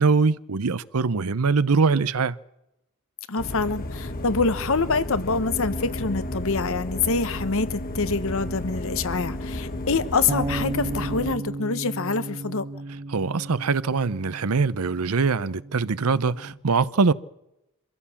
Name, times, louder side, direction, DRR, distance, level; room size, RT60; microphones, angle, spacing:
voice 1, 0.0-2.4 13.1-17.1, right 4 dB, 85° right, 0.7 m, -22 dB
voice 2, 3.3-12.6, left 4 dB, 65° left, 1.1 m, -26 dB
sound 1, 3.4-11.3, left 1 dB, 40° left, 1.4 m, -32 dB
sound 2, 10.3-16.5, right 2 dB, 30° right, 1.4 m, -35 dB
25.0 x 16.0 x 7.2 m
head